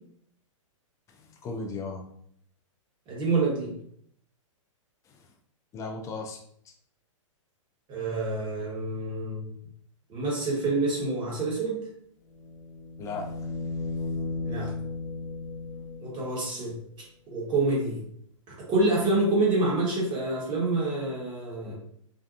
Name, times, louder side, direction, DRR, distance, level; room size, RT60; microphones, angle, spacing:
voice 1, 1.1-2.0 5.1-5.2 5.7-6.7 13.0-13.5, left 3 dB, 20° left, 2 dB, 0.3 m, -37 dB
voice 2, 3.1-3.7 7.9-9.5 10.1-11.8 14.4-14.7 16.0-16.7 17.3-18.0 18.7-21.8, right 2 dB, 25° right, -4 dB, 1.1 m, -27 dB
sound 1, 12.3-16.4 18.8-18.9, left 3 dB, 65° left, 0.5 m, -35 dB
2.6 x 2.2 x 2.4 m, 0.65 s
hypercardioid pair, 130°, 17 cm